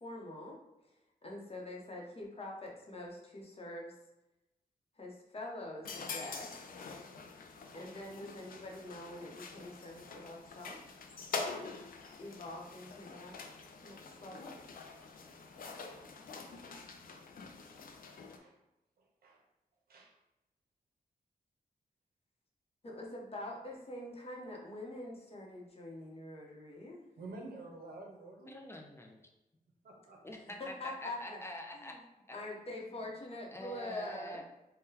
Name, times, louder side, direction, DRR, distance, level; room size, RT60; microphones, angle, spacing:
voice 1, 0.0-0.9 1.2-3.9 5.0-6.6 7.7-10.8 11.6-11.8 12.2-13.4 13.8-14.5 22.8-27.1 30.3-31.4 31.7-32.0 32.3-34.4, left 1 dB, 40° left, -1 dB, 0.8 m, -45 dB
sound 1, 5.8-18.4, left 4 dB, 65° left, 0.4 m, -45 dB
voice 2, 27.2-28.6 29.8-30.2, right 2 dB, 80° right, 0 dB, 0.7 m, -49 dB
voice 3, 28.5-29.2 30.2-32.0 32.3-32.4 33.5-34.4, left 1 dB, 15° left, 1 dB, 0.5 m, -46 dB
3.7 x 2.2 x 2.8 m, 0.94 s
cardioid pair, 80°, 16 cm